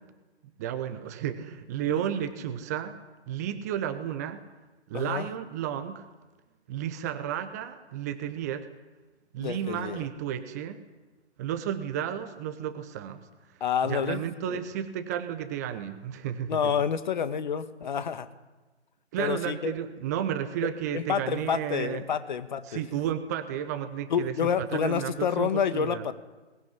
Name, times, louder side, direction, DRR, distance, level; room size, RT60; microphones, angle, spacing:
voice 1, 0.6-3.0 3.3-4.4 4.9-6.0 6.7-8.7 9.3-10.8 11.4-13.2 13.8-16.6 19.1-22.0 22.7-26.0, right 10 dB, 15° right, 9 dB, 0.9 m, -32 dB
voice 2, 4.9-5.3 9.4-10.0 13.6-14.6 16.5-18.3 19.2-19.8 20.9-22.8 24.1-26.1, left 7 dB, 40° left, 11 dB, 1.7 m, -29 dB
22.0 x 19.5 x 9.7 m, 1.2 s
figure-of-eight pair, 140°, 34 cm